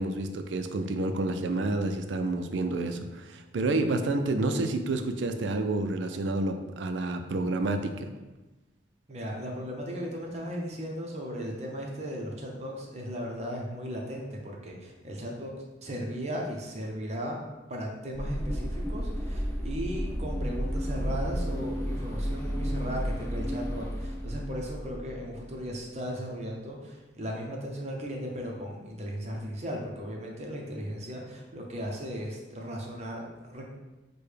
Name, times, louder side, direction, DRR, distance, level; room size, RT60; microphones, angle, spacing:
voice 1, 0.0-8.1, right 2 dB, 80° right, 7 dB, 0.4 m, -29 dB
voice 2, 9.1-15.5 15.8-17.4 17.7-33.7, equal, 35° right, 0 dB, 0.7 m, -36 dB
sound 1, 18.1-25.6, equal, 15° left, 0.5 m, -32 dB
6.6 x 2.2 x 3.3 m, 1.1 s
head